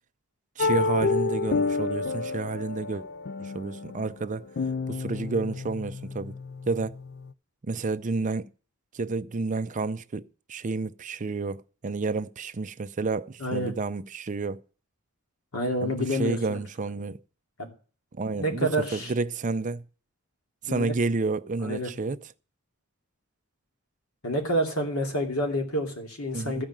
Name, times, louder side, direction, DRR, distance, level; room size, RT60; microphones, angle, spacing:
sound 1, 0.6-7.3, left 4 dB, 50° left, 0.4 m, -30 dB
voice 1, 0.6-3.0 3.4-4.5 4.9-6.3 6.7-6.9 7.6-8.5 8.9-14.6 15.8-17.2 18.1-19.8 20.6-22.2 26.3-26.6, right 3 dB, 35° right, 0.5 m, -30 dB
voice 2, 13.4-13.7 15.5-16.6 17.6-17.7 18.4-19.1 20.7-20.9 21.6-21.9 24.2-26.6, equal, 85° left, 2.7 m, -28 dB
13.5 x 5.2 x 7.4 m
head